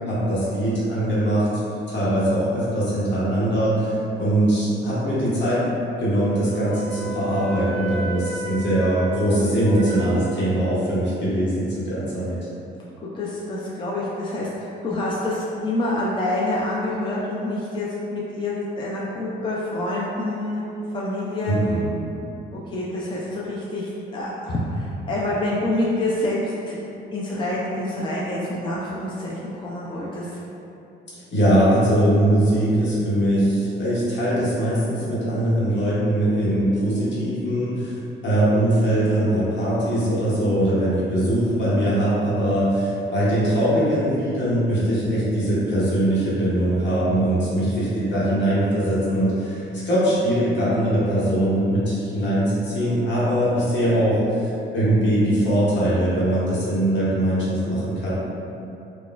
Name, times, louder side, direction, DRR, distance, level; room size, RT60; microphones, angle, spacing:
voice 1, 0.1-1.5 1.9-5.6 6.0-12.4 21.5-21.9 31.1-58.1, right 1 dB, 65° left, -9 dB, 1.2 m, -21 dB
Wind instrument woodwind instrument, 6.1-10.8, right 1 dB, 50° right, 0.8 m, -33 dB
voice 2, 13.1-20.6 20.9-21.6 22.5-26.8 27.1-30.4, left 1 dB, 25° left, -6 dB, 0.5 m, -27 dB
4.0 x 2.4 x 2.3 m, 2.8 s
cardioid pair, 90°, 20 cm